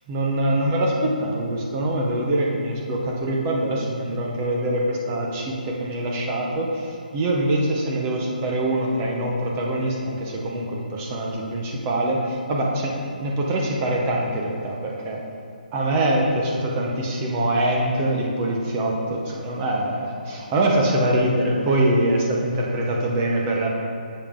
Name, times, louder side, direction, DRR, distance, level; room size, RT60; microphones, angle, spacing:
voice 1, 0.1-15.2 15.7-23.7, right 1 dB, 10° right, -2 dB, 0.5 m, -24 dB
7.1 x 7.0 x 3.5 m, 2.7 s
hypercardioid pair, 175°, 5 cm